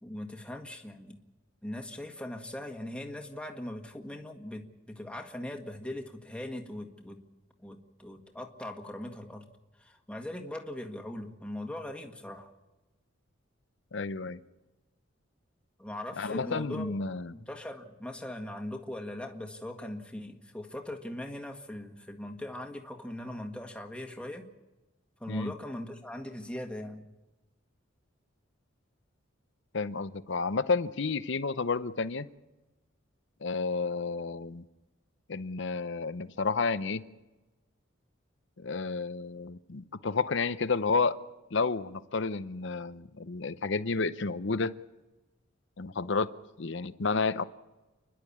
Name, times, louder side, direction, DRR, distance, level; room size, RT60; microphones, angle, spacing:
voice 1, 0.0-1.2 1.6-7.2 7.6-9.5 9.8-12.5 15.8-16.9 17.3-24.4 25.2-27.1, left 1 dB, 5° left, 3 dB, 1.7 m, -40 dB
voice 2, 13.9-14.4 16.2-17.3 25.3-25.5 29.7-32.3 33.4-34.6 35.3-37.0 38.6-41.2 41.5-44.7 45.8-46.3 46.6-47.4, left 4 dB, 65° left, 14 dB, 0.8 m, -31 dB
30.0 x 11.5 x 8.5 m, 1.1 s
head